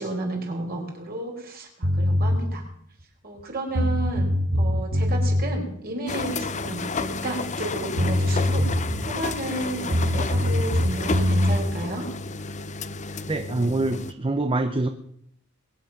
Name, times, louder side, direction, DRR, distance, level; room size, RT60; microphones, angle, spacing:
voice 1, 0.0-2.6 3.2-4.3 4.6-8.7 9.0-12.0, right 2 dB, 45° right, 1 dB, 4.4 m, -32 dB
sound 1, 1.8-2.4 3.4-3.5 3.7-5.4 7.6-7.7 8.0-9.2 9.9-11.6, left 1 dB, 65° right, 1.8 m, -22 dB
sound 2, 6.1-14.1, left 4 dB, 35° left, 0.7 m, -31 dB
voice 2, 13.3-14.9, right 2 dB, 25° right, 8 dB, 0.7 m, -25 dB
22.0 x 9.8 x 5.9 m, 0.72 s
head